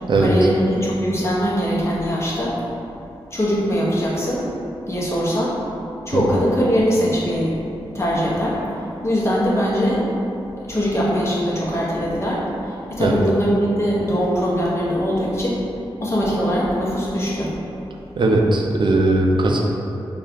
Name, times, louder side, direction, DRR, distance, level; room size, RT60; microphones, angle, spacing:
voice 1, 0.2-2.6 3.3-4.5 4.9-5.6 6.1-7.6 7.9-10.1 10.6-15.6 16.0-17.5, equal, 30° left, -6 dB, 1.0 m, -21 dB
voice 2, 18.2-19.6, right 2 dB, 55° right, 0 dB, 0.5 m, -18 dB
4.5 x 2.4 x 3.4 m, 2.8 s
wide cardioid pair, 80°, 10 cm